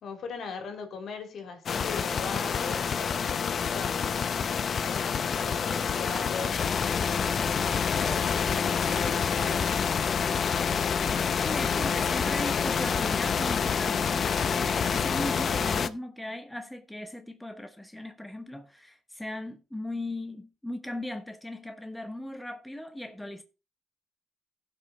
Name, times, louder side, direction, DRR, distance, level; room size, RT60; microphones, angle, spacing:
voice 1, 0.0-7.3 7.9-9.7, left 4 dB, 65° left, 3.2 m, -39 dB
sound 1, 1.7-15.9, left 6 dB, 50° left, 0.7 m, -27 dB
voice 2, 11.4-14.3 14.5-23.4, left 1 dB, 5° left, 1.1 m, -37 dB
15.5 x 5.9 x 4.0 m
cardioid pair, 90°, 0 cm